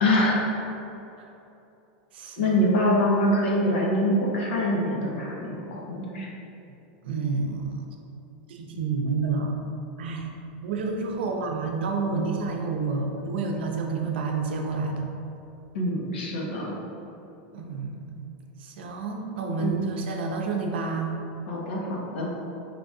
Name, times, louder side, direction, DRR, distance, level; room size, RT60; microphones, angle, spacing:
voice 1, 0.0-0.5 2.4-6.3 15.7-16.8 19.6-19.7 21.5-22.3, left 1 dB, 75° left, -3 dB, 1.0 m, -24 dB
voice 2, 2.1-2.6 7.0-7.8 8.5-9.6 10.0-10.3 10.6-15.1 17.5-18.3 18.6-21.1, right 4 dB, 80° right, 2 dB, 0.6 m, -29 dB
4.9 x 2.6 x 3.6 m, 2.9 s
supercardioid pair, 175°, 6 cm